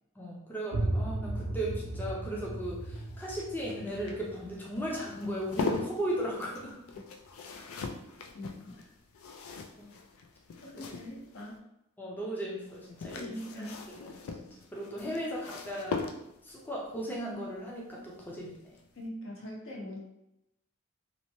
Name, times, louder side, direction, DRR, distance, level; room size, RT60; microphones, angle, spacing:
voice 1, 0.2-6.7 9.8-9.9 12.0-13.3 14.0-14.2 14.7-16.0 16.4-18.7, right 1 dB, 10° left, -3 dB, 0.4 m, -36 dB
sound 1, 0.7-6.3, right 2 dB, 80° right, 0.5 m, -36 dB
sound 2, 2.7-11.5 12.7-16.6 18.2-18.5 18.8-18.9, left 4 dB, 85° left, 0.4 m, -40 dB
voice 2, 8.3-8.8 10.7-11.6 13.2-13.8 15.0-15.2 19.0-20.0, left 1 dB, 70° left, -2 dB, 0.7 m, -42 dB
2.8 x 2.1 x 3.0 m, 0.85 s
head